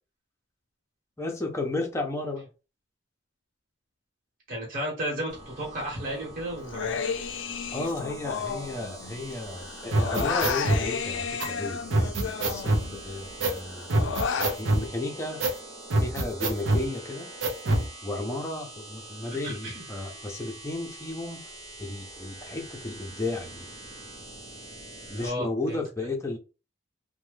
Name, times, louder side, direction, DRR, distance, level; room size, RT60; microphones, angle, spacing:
voice 1, 1.2-2.5 7.7-13.9 14.4-15.4 16.0-17.3 18.0-21.4 21.8-23.7 25.1-26.4, left 2 dB, 15° left, 0.6 m, -33 dB
voice 2, 4.5-7.1 19.2-19.8 25.2-25.8, equal, 45° right, 1.2 m, -33 dB
sound 1, 5.3-25.3, right 2 dB, 30° right, 0.9 m, -44 dB
Human voice, 6.7-9.3 9.6-13.1 13.5-14.6, left 6 dB, 65° left, 0.4 m, -32 dB
sound 2, 9.9-10.8 11.4-11.5 11.9-12.9 13.4-13.6 13.9-14.9 15.4-15.6 15.9-16.9 17.4-17.9, right 1 dB, 75° right, 0.6 m, -24 dB
2.8 x 2.2 x 3.2 m
head